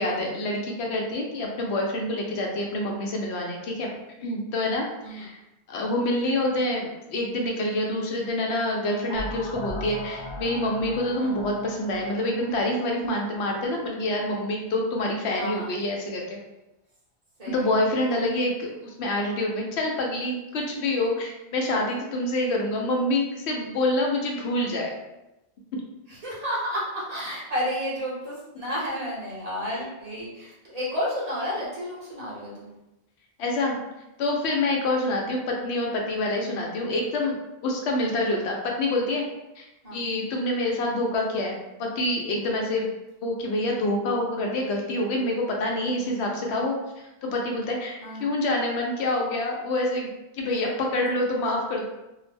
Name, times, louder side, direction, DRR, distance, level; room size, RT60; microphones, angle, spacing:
voice 1, 0.0-3.9 4.2-5.3 5.7-16.4 17.5-24.9 33.4-33.8 34.2-37.4 37.6-39.2 39.6-42.9 43.2-50.1 50.4-51.9, left 1 dB, 80° left, 0 dB, 0.8 m, -27 dB
sound 1, 9.1-13.8, left 1 dB, 35° left, 0.6 m, -38 dB
voice 2, 15.3-15.8 17.4-17.7 18.1-18.3 26.1-32.7 35.0-35.2 39.8-40.0 42.6-42.9 48.0-48.3, equal, 40° right, -7 dB, 0.8 m, -32 dB
2.3 x 2.0 x 3.2 m, 0.96 s
omnidirectional pair, 1.1 m